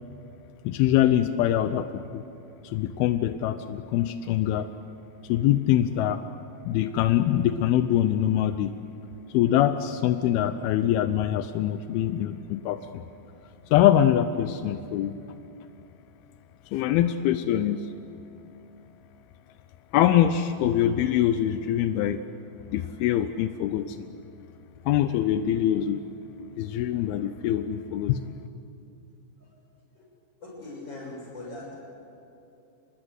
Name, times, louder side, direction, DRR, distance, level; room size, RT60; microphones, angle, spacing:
voice 1, 0.6-2.2 2.6-4.7 5.3-6.2 6.6-8.7 9.3-13.0 13.7-15.2 16.7-17.8 19.9-22.2 22.7-24.1 24.9-26.0 26.6-28.3, left 11 dB, 85° left, 10 dB, 2.2 m, -24 dB
voice 2, 30.4-31.7, left 2 dB, 25° left, -3 dB, 7.1 m, -40 dB
26.5 x 20.5 x 8.2 m, 2.8 s
omnidirectional pair, 5.2 m